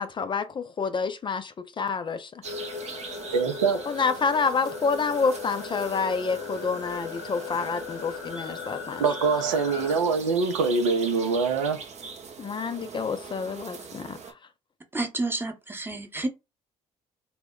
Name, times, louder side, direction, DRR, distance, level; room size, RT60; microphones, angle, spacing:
voice 1, 0.0-2.4 3.9-9.0 12.4-14.2, left 5 dB, 30° left, 0.4 m, -28 dB
sound 1, 2.4-10.0, left 6 dB, 80° left, 0.6 m, -38 dB
sound 2, 2.4-14.3, right 5 dB, 45° right, 0.7 m, -41 dB
voice 2, 3.3-3.8 9.0-11.9, right 4 dB, 85° right, 0.5 m, -24 dB
voice 3, 14.9-16.3, right 2 dB, 15° right, 0.8 m, -30 dB
2.1 x 2.0 x 3.6 m
hypercardioid pair, 55°, 16 cm